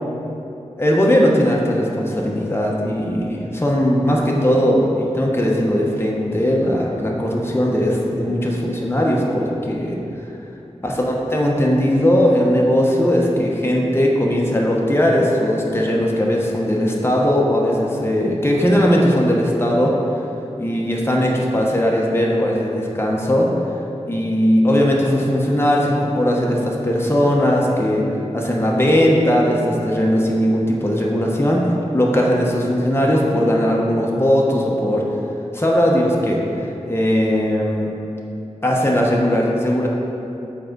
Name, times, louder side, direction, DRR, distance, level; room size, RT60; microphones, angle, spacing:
voice 1, 0.8-10.0 10.8-19.9 20.6-23.5 24.0-28.1 28.3-35.0 35.5-36.4 36.8-37.9 38.6-39.9, equal, 20° left, -2 dB, 0.9 m, -18 dB
7.6 x 4.6 x 3.9 m, 2.9 s
wide cardioid pair, 45°, 12 cm